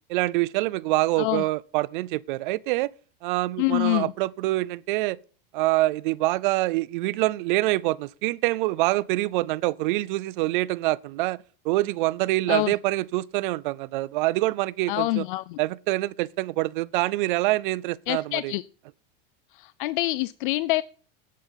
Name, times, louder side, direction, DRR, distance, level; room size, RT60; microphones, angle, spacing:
voice 1, 0.1-2.9 3.2-5.2 5.5-11.4 11.6-15.2 15.6-18.5, right 19 dB, 60° right, 0.5 m, -25 dB
voice 2, 1.2-1.5 3.6-4.1 12.5-12.7 14.9-15.6 18.1-18.6 19.5-20.8, left 19 dB, 60° left, 0.5 m, -26 dB
10.0 x 8.7 x 5.6 m
supercardioid pair, 175°, 30 cm